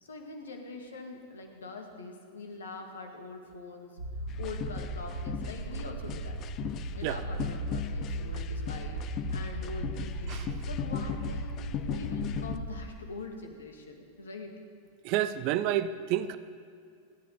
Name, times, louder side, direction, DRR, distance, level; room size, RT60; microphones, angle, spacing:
voice 1, 0.0-6.4 6.9-10.4 10.7-11.6 11.9-14.6, left 3 dB, 70° left, 4 dB, 2.1 m, -43 dB
sound 1, 4.0-12.8, right 1 dB, 70° right, 1.6 m, -36 dB
sound 2, 4.3-12.6, left 12 dB, 35° left, 0.6 m, -38 dB
voice 2, 15.0-16.4, right 12 dB, 45° right, 13 dB, 0.7 m, -29 dB
29.0 x 11.0 x 4.0 m, 2.3 s
figure-of-eight pair, 90°, 0 cm